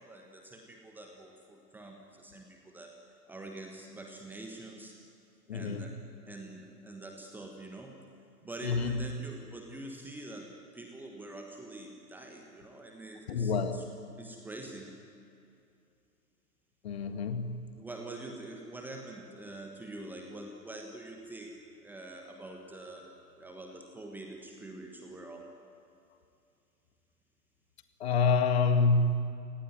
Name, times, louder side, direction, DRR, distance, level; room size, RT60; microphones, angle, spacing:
voice 1, 0.0-2.9 3.3-4.9 5.5-6.0 6.3-8.0 8.4-13.8 14.2-15.0 17.8-21.6 21.8-25.5, right 2 dB, 5° right, 2 dB, 1.4 m, -45 dB
voice 2, 5.5-5.9 8.6-9.1 13.3-13.9 16.8-17.8 28.0-29.1, left 4 dB, 40° left, 8 dB, 1.9 m, -27 dB
28.5 x 18.5 x 9.3 m, 2.6 s
figure-of-eight pair, 125°, 47 cm